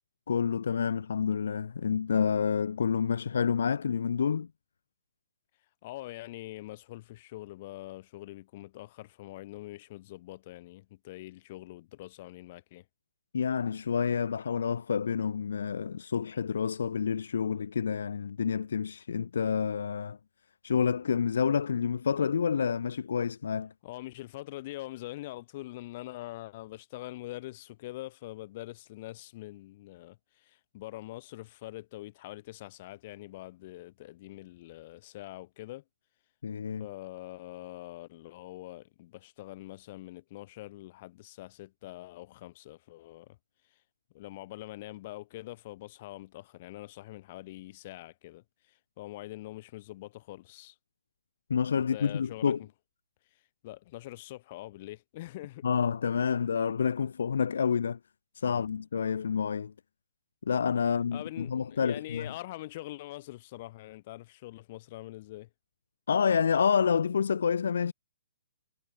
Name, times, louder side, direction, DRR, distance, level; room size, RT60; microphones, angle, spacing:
voice 1, 0.3-4.5 13.3-20.2 20.6-23.7 36.4-36.9 51.5-52.6 55.6-58.0 58.3-59.7 60.5-62.3 66.1-67.9, left 6 dB, 75° left, 1.1 m, -28 dB
voice 2, 5.8-12.8 23.8-35.8 36.8-43.4 44.1-50.7 51.8-52.7 53.6-55.7 58.5-58.7 60.8-65.5, left 17 dB, 45° left, 4.4 m, -44 dB
hypercardioid pair, 140°, 0 cm